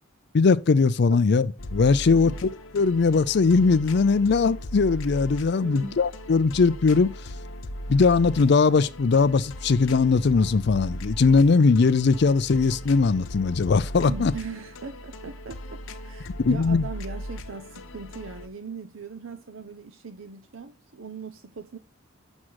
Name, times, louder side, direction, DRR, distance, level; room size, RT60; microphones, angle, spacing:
voice 1, 0.3-2.5 2.7-7.1 7.9-14.3 16.2-16.8, left 4 dB, 55° left, 0.4 m, -20 dB
sound 1, 1.6-18.5, equal, 90° left, 0.9 m, -38 dB
voice 2, 5.6-6.0 14.1-21.8, right 5 dB, 85° right, 0.8 m, -40 dB
7.3 x 6.3 x 6.3 m
head